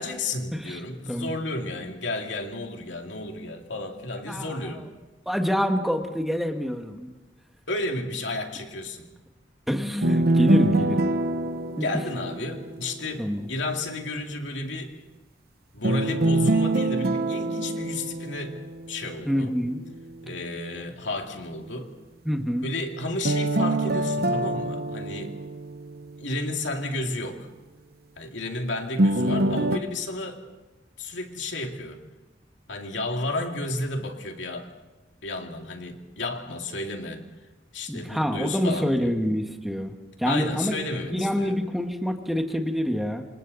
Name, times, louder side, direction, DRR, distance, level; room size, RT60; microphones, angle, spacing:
voice 1, 0.0-4.9 7.7-9.0 11.8-14.9 15.7-18.6 18.9-19.5 20.2-21.9 22.6-25.4 26.2-27.5 28.2-30.4 31.0-32.0 32.7-34.7 35.2-37.2 37.7-39.1 40.3-41.6, left 2 dB, 85° left, 3 dB, 2.4 m, -32 dB
voice 2, 4.3-4.8 5.2-7.1 9.7-11.1 11.8-11.9 13.2-13.4 19.2-19.8 22.2-22.7 37.9-39.9 40.2-40.8 41.1-43.2, equal, ahead, 4 dB, 1.6 m, -26 dB
sound 1, 10.0-13.1 15.8-19.1 23.2-26.3 29.0-29.8, right 1 dB, 55° right, 0.9 m, -25 dB
27.5 x 26.5 x 4.1 m, 1.1 s
head